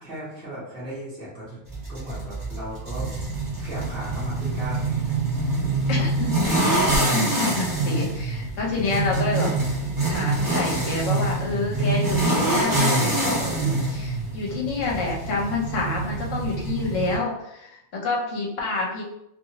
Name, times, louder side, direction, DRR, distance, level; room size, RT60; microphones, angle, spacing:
voice 1, 0.0-1.6 1.9-3.1 3.6-6.0, right 1 dB, 5° left, -10 dB, 1.1 m, -37 dB
sound 1, 1.7-17.2, right 2 dB, 30° right, 0.4 m, -25 dB
voice 2, 5.9-9.5 10.1-19.0, left 3 dB, 70° left, -1 dB, 1.0 m, -28 dB
2.6 x 2.6 x 2.8 m, 0.79 s
omnidirectional pair, 1.4 m